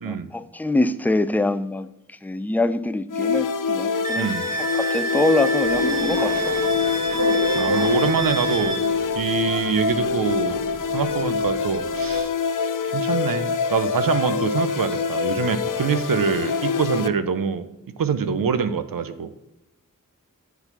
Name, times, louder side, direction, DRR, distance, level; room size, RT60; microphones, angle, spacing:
voice 1, 0.0-1.9 2.2-6.5, left 2 dB, 5° left, 12 dB, 0.4 m, -24 dB
sound 1, 3.1-17.1, left 5 dB, 70° left, 0.5 m, -25 dB
Wind instrument woodwind instrument, 4.0-8.8, right 4 dB, 10° right, 2.2 m, -29 dB
voice 2, 4.2-4.5 7.5-8.8 9.2-10.6 10.9-12.3 12.8-17.7 18.0-19.3, right 6 dB, 85° right, 11 dB, 0.6 m, -24 dB
sound 2, 5.6-12.2, right 1 dB, 60° right, 1.4 m, -33 dB
7.2 x 4.0 x 6.6 m, 0.88 s
cardioid pair, 40°, 33 cm